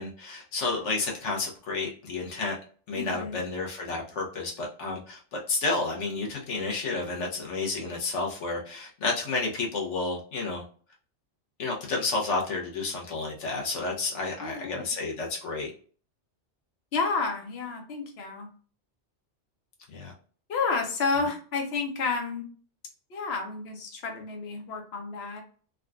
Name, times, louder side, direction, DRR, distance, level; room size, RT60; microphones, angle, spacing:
voice 1, 0.0-2.6 2.9-10.6 11.6-15.7 19.9-20.1, left 3 dB, 90° left, 0 dB, 1.2 m, -31 dB
voice 2, 2.9-3.4 14.4-14.8 16.9-18.5 20.5-22.4 23.1-25.4, left 4 dB, 65° left, 3 dB, 1.0 m, -30 dB
3.6 x 2.3 x 2.3 m, 0.42 s
omnidirectional pair, 1.2 m